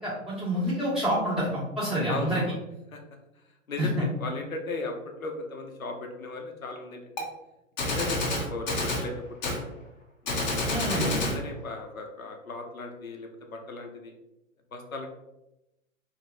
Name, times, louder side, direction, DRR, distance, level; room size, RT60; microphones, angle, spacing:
voice 1, 0.0-2.4 3.8-4.0 10.7-11.2, equal, ahead, -11 dB, 1.2 m, -28 dB
voice 2, 2.1-2.6 2.9-3.0 3.7-3.9 4.2-4.9 5.2-7.3 7.9-9.6 10.2-14.1 14.7-15.1, left 3 dB, 90° left, 3 dB, 0.6 m, -37 dB
Gunshot gunfire, 7.2-7.3 7.8-9.1 9.4-9.6 10.3-11.4, left 2 dB, 35° left, 0.6 m, -28 dB
3.2 x 2.0 x 2.6 m, 0.91 s
figure-of-eight pair, 110°, 40 cm